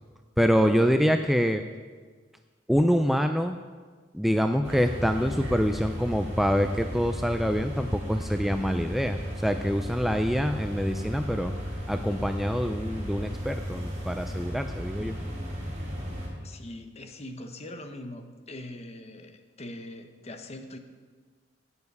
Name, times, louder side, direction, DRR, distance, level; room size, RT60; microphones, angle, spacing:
voice 1, 0.4-1.6 2.7-3.6 4.1-11.5 11.9-15.2, equal, ahead, 6 dB, 0.4 m, -25 dB
sound 1, 4.6-16.3, equal, 40° right, 3.8 m, -35 dB
voice 2, 16.4-20.8, left 1 dB, 35° left, 7 dB, 1.0 m, -42 dB
16.5 x 7.1 x 5.4 m, 1.5 s
head